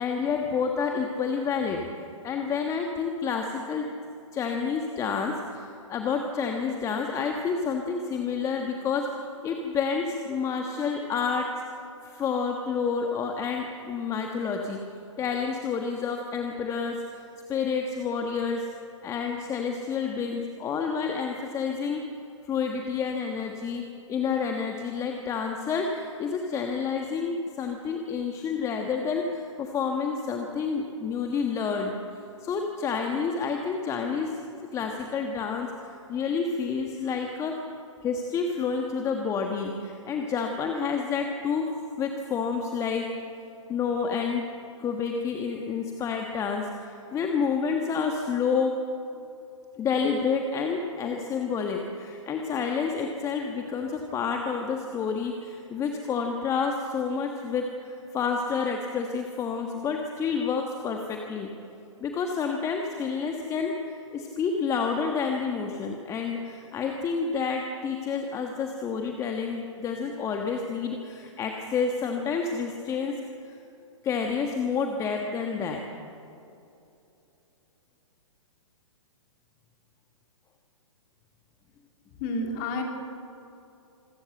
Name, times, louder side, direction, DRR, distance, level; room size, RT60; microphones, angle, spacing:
voice 1, 0.0-1.8 2.2-3.8 4.3-9.1 9.4-11.5 12.0-14.8 15.2-17.2 17.5-18.7 19.0-22.0 22.4-23.8 24.1-31.9 32.4-34.4 34.7-37.6 38.0-41.7 42.0-43.1 43.7-44.4 44.8-48.7 49.8-61.5 62.0-73.1 73.5-73.6 74.0-75.8, left 5 dB, 20° left, 3 dB, 1.5 m, -29 dB
voice 2, 82.2-82.8, left 2 dB, 35° left, 2 dB, 3.9 m, -29 dB
26.5 x 13.5 x 7.8 m, 2.8 s
figure-of-eight pair, 120°, 16 cm